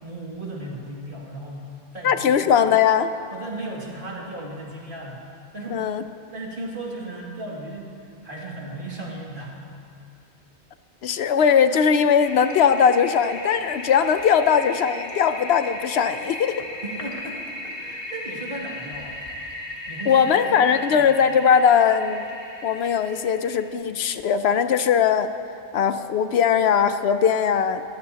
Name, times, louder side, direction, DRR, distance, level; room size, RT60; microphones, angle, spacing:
voice 1, 0.0-2.4 3.3-5.3 5.5-5.9 6.3-9.6 16.8-19.2 19.9-21.1, right 2 dB, 50° right, -4 dB, 2.5 m, -36 dB
voice 2, 2.0-3.1 5.7-6.0 11.0-16.6 20.1-22.2 22.6-25.3 25.7-27.8, left 7 dB, 75° left, 10 dB, 0.8 m, -20 dB
Toilet flush, 12.2-23.7, left 1 dB, 55° left, 1.7 m, -36 dB
24.0 x 14.0 x 2.9 m, 2.6 s
omnidirectional pair, 1.1 m